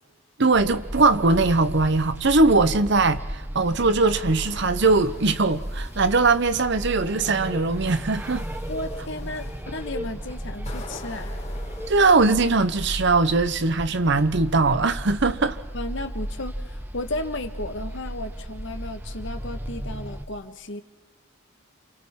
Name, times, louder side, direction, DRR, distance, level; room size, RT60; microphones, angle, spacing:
voice 1, 0.4-3.2 3.5-8.4 11.9-15.6, right 3 dB, 55° right, 0.9 m, -20 dB
sound 1, 0.5-20.3, equal, 10° right, 0.8 m, -34 dB
sound 2, 3.8-6.4 7.0-11.9, left 2 dB, 30° left, 2.5 m, -46 dB
voice 2, 8.7-11.3 15.7-20.8, left 1 dB, 55° left, 1.5 m, -34 dB
29.5 x 28.5 x 3.8 m
head